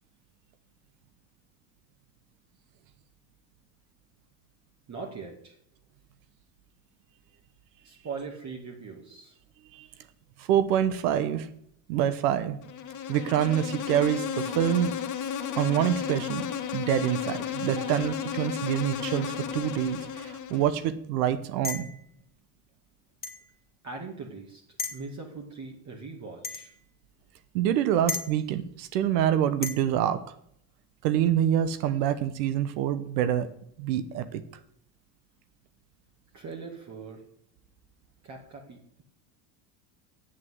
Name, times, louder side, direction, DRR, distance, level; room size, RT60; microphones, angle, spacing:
voice 1, 4.9-5.6 7.8-9.4 23.8-24.6 24.9-26.7 36.3-37.2 38.2-39.0, right 4 dB, 35° right, 0 dB, 2.4 m, -41 dB
voice 2, 10.4-11.5 11.9-12.6 13.1-14.9 15.6-16.5 16.7-21.9 27.5-30.2 31.0-33.5 33.8-34.4, right 10 dB, 85° right, 12 dB, 1.1 m, -26 dB
Insect, 12.6-20.8, left 8 dB, 40° left, 1.6 m, -33 dB
sound 1, 21.6-22.0 23.2-23.4 24.8-25.0 26.4-26.7 28.1-28.3 29.6-29.8, left 4 dB, 20° left, 1.7 m, -33 dB
8.8 x 7.8 x 8.1 m, 0.70 s
supercardioid pair, 110°, 48 cm